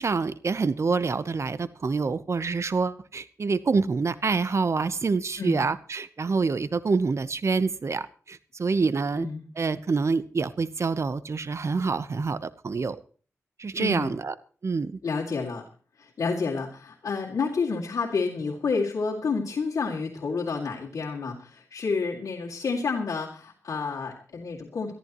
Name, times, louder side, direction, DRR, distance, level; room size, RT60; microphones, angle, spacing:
voice 1, 0.0-9.3 9.6-13.0 13.6-14.3 14.6-15.0, right 4 dB, 60° right, 14 dB, 0.9 m, -26 dB
voice 2, 9.1-9.5 13.8-14.2 15.0-15.6 16.0-24.9, left 4 dB, 85° left, -5 dB, 2.2 m, -29 dB
22.0 x 13.5 x 3.0 m, 0.40 s
cardioid pair, 60°, 5 cm